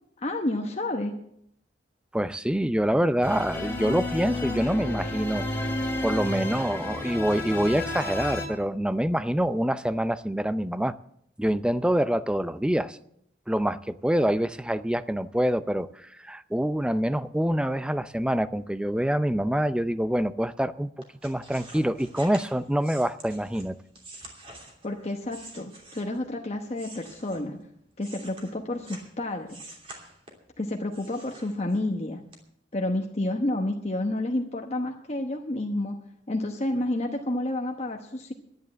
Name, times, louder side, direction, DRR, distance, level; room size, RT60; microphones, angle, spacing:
voice 1, 0.2-1.1 24.8-27.6 28.0-29.6 30.6-32.2 32.7-36.0 36.3-38.3, left 1 dB, 35° left, 1.0 m, -30 dB
voice 2, 2.1-5.5 6.0-10.9 11.4-13.0 13.5-20.9 21.2-23.8, equal, 5° right, 0.4 m, -26 dB
sound 1, 3.2-8.5, left 1 dB, 10° left, 2.6 m, -31 dB
sound 2, 21.0-26.3 26.7-29.1 29.5-30.5 30.9-32.0 32.3-32.4, right 2 dB, 30° right, 2.9 m, -47 dB
11.0 x 10.5 x 7.6 m
head